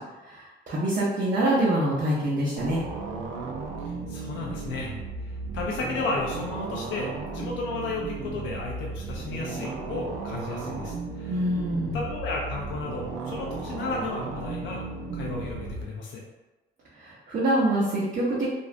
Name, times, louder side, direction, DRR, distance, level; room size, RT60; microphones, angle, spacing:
voice 1, 0.2-2.8 11.3-12.0 17.0-18.5, right 1 dB, 40° right, -8 dB, 0.7 m, -25 dB
sound 1, 2.6-15.8, right 3 dB, 80° right, 0.4 m, -35 dB
voice 2, 3.8-4.9 5.2-11.4 11.9-14.8 15.1-16.2, left 3 dB, 75° left, -2 dB, 0.4 m, -33 dB
2.4 x 2.0 x 2.4 m, 1.1 s
cardioid pair, 90°, 20 cm